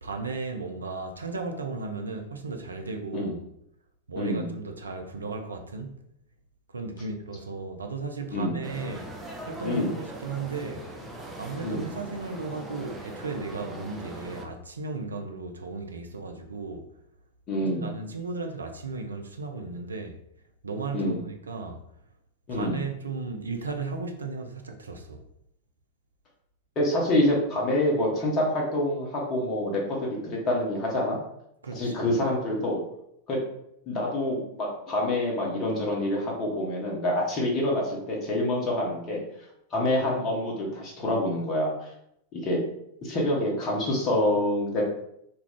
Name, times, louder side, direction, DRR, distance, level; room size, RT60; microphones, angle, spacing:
voice 1, 0.0-3.4 4.1-6.0 6.7-9.1 9.4-10.9 11.4-16.9 17.7-20.2 20.6-21.8 22.5-25.2 31.6-32.1, right 3 dB, 75° right, 0.4 m, -35 dB
voice 2, 4.2-4.5 8.3-8.6 9.6-9.9 11.6-11.9 17.5-18.0 20.9-21.2 22.5-22.8 26.8-31.2 31.7-32.8 33.3-33.4 33.9-39.2 39.7-41.9 42.3-42.6 43.0-44.8, left 1 dB, 30° left, 0.8 m, -26 dB
sound 1, 8.6-14.4, right 1 dB, ahead, 0.5 m, -41 dB
2.3 x 2.2 x 3.5 m
figure-of-eight pair, 90°, 0 cm